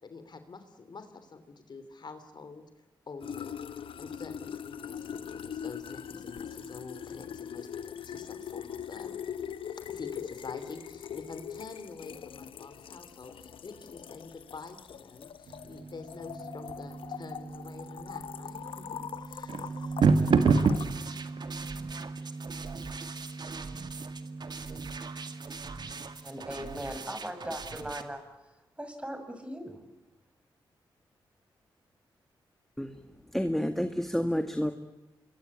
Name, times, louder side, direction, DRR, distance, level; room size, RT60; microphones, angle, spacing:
voice 1, 0.0-2.7 3.1-3.6 4.0-9.2 9.7-19.9 20.4-20.5, left 4 dB, 55° left, 3.2 m, -47 dB
sound 1, 3.2-20.9, left 8 dB, 75° left, 1.1 m, -41 dB
sound 2, 15.5-26.3, right 4 dB, 70° right, 1.8 m, -31 dB
sound 3, 20.0-28.0, right 4 dB, 50° right, 2.2 m, -43 dB
voice 2, 26.2-29.8, equal, 15° right, 6.2 m, -39 dB
voice 3, 33.3-34.7, equal, 5° left, 2.0 m, -29 dB
26.5 x 22.5 x 8.7 m
cardioid pair, 55°, 9 cm